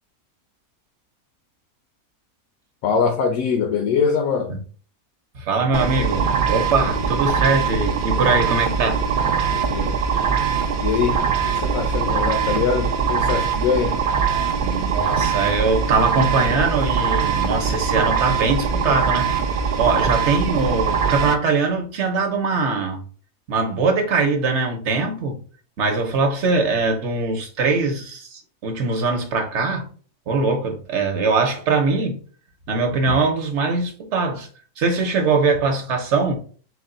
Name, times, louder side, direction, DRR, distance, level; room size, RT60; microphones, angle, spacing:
voice 1, 2.8-4.5 9.5-10.0 10.8-14.0 19.9-20.1, left 6 dB, 75° left, 1.0 m, -23 dB
voice 2, 5.3-9.0 14.6-19.3 19.8-23.0 23.5-25.4 25.8-29.9 30.3-32.2 32.7-34.5 34.8-36.4, right 4 dB, 55° right, 1.1 m, -22 dB
sound 1, 5.7-21.4, right 6 dB, 75° right, 0.4 m, -22 dB
4.3 x 2.3 x 3.8 m
omnidirectional pair, 1.6 m